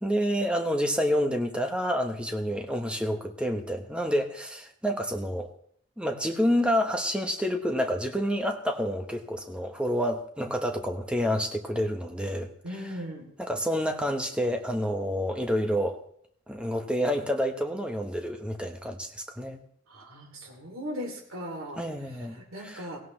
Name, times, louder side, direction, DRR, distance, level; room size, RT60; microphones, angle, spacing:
voice 1, 0.0-5.5 6.0-12.9 13.4-16.0 16.5-19.6 21.8-22.9, equal, 5° right, 5 dB, 1.1 m, -28 dB
voice 2, 12.6-13.3 19.9-21.8 22.3-23.0, equal, 85° right, 0 dB, 2.9 m, -38 dB
17.5 x 17.0 x 3.2 m, 0.64 s
head